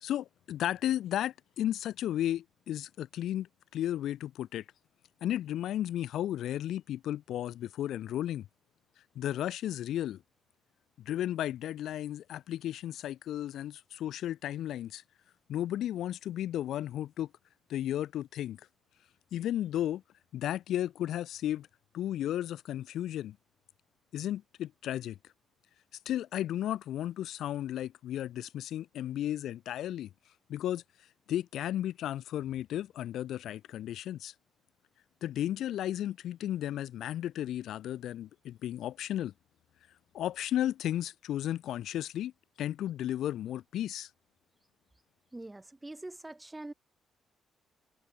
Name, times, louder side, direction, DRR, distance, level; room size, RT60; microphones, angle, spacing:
voice 1, 0.0-4.6 5.2-8.5 9.2-10.2 11.0-15.0 15.5-17.3 17.7-18.6 19.3-20.0 20.3-21.7 21.9-23.4 24.1-25.2 26.1-30.1 30.5-30.8 31.3-34.3 35.2-39.3 40.1-42.3 42.6-44.1, left 12 dB, 75° left, 0.4 m, -34 dB
voice 2, 45.3-46.7, right 2 dB, 15° right, 2.2 m, -44 dB
cardioid pair, 90°, 0 cm